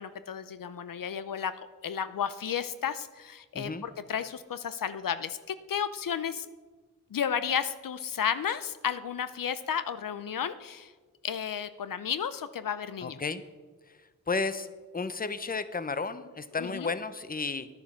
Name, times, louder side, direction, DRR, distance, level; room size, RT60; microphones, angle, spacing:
voice 1, 0.0-1.5 1.8-6.5 7.1-10.9 11.2-13.2 16.6-16.9, left 8 dB, 80° left, 13 dB, 0.6 m, -33 dB
voice 2, 3.5-3.9 13.0-13.4 14.3-14.7 14.9-17.7, left 4 dB, 25° left, 13 dB, 0.7 m, -32 dB
10.5 x 9.3 x 6.1 m, 1.3 s
cardioid pair, 50°, 33 cm